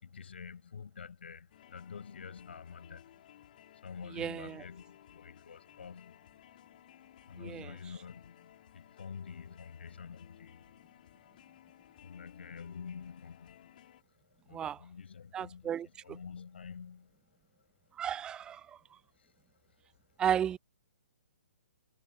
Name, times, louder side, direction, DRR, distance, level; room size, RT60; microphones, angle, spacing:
voice 1, 0.0-3.2 3.8-6.2 7.3-10.6 12.0-13.7 14.5-17.1 19.2-19.3, left 6 dB, 60° left, 6.2 m, -48 dB
sound 1, 1.5-14.0, left 11 dB, 45° left, 5.5 m, -58 dB
voice 2, 4.1-4.6 7.4-7.7 14.5-14.8 15.3-15.9 18.0-18.6 20.2-20.6, right 9 dB, 10° right, 0.6 m, -33 dB
figure-of-eight pair, 125°, 7 cm